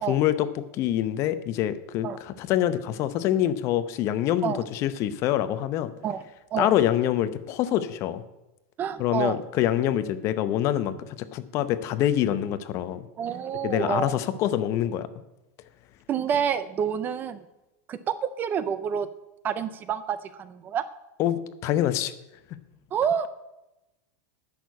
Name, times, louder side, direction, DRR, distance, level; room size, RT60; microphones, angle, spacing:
voice 1, 0.1-5.9 6.6-8.2 9.0-13.1 13.6-15.1 21.2-22.1, left 12 dB, 35° left, 13 dB, 0.7 m, -25 dB
voice 2, 8.8-9.4 13.2-14.2 16.1-17.4 17.9-19.1 19.4-20.8 22.9-23.3, right 8 dB, 20° right, 14 dB, 0.5 m, -28 dB
10.5 x 6.6 x 8.3 m, 0.96 s
supercardioid pair, 160°, 9 cm